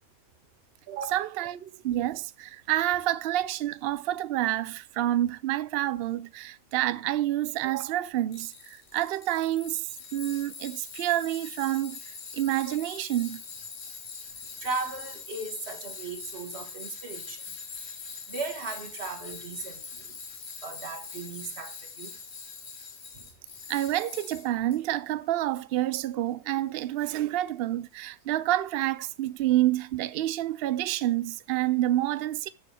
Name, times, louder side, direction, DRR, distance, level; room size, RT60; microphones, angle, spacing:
voice 1, 0.9-12.0 12.3-13.4 23.7-32.5, right 14 dB, 85° right, 0.5 m, -28 dB
Tools, 8.3-24.8, left 5 dB, 45° left, 1.4 m, -43 dB
voice 2, 14.6-17.6 18.3-20.2 20.6-22.1 23.1-23.3, right 3 dB, 45° right, 1.8 m, -37 dB
7.3 x 6.7 x 4.8 m
omnidirectional pair, 1.6 m